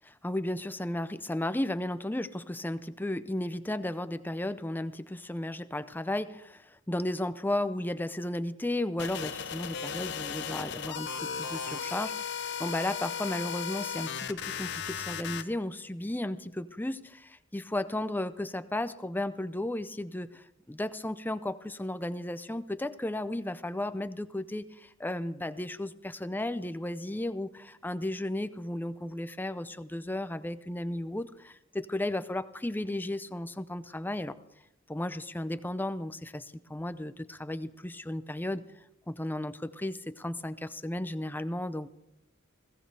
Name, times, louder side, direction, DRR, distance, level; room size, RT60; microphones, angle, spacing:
voice 1, 0.1-34.4 34.9-38.6 39.1-41.9, left 1 dB, 10° left, 13 dB, 0.5 m, -34 dB
sound 1, 9.0-15.4, left 7 dB, 60° left, 0.9 m, -36 dB
21.5 x 16.5 x 3.4 m, 0.84 s
head